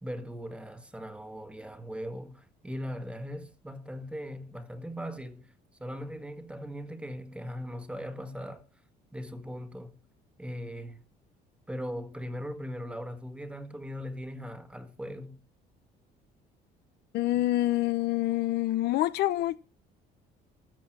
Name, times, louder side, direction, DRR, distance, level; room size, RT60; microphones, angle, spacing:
voice 1, 0.0-5.5 5.8-8.6 9.1-10.0 10.4-11.0 11.7-15.4 17.3-17.4, equal, 5° right, 1.6 m, -39 dB
voice 2, 17.1-19.6, left 15 dB, 75° left, 0.8 m, -27 dB
14.0 x 7.3 x 6.1 m
cardioid pair, 110°, 17 cm